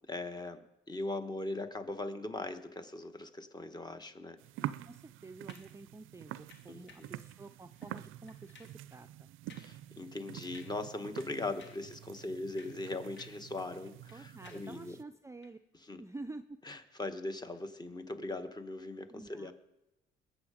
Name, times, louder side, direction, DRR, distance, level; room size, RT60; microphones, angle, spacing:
voice 1, 0.1-4.4 6.7-7.1 9.6-14.9 15.9-16.0 16.6-19.5, left 2 dB, 20° left, 8 dB, 1.3 m, -40 dB
sound 1, 4.4-15.0, right 14 dB, 85° right, 0.4 m, -47 dB
voice 2, 4.6-9.3 14.1-15.6 16.0-16.6 19.1-19.5, right 2 dB, 15° right, 9 dB, 0.5 m, -49 dB
sound 2, 5.5-5.8 6.5-7.2 7.7-8.0 8.3-8.8 9.5-9.8 10.1-10.2 10.5-10.9 11.2-11.9 12.4-13.5 13.8-14.8 15.4-15.6, left 5 dB, 65° left, 1.8 m, -59 dB
21.0 x 7.6 x 5.0 m, 0.94 s
cardioid pair, 90°, 20 cm